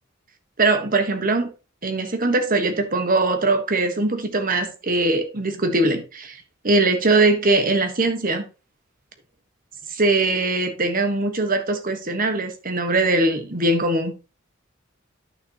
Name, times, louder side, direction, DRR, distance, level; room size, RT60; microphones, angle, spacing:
voice 1, 0.6-1.5 1.8-6.4 6.6-8.4 9.9-14.1, right 2 dB, 45° right, 1.4 m, -21 dB
11.0 x 6.3 x 2.9 m
head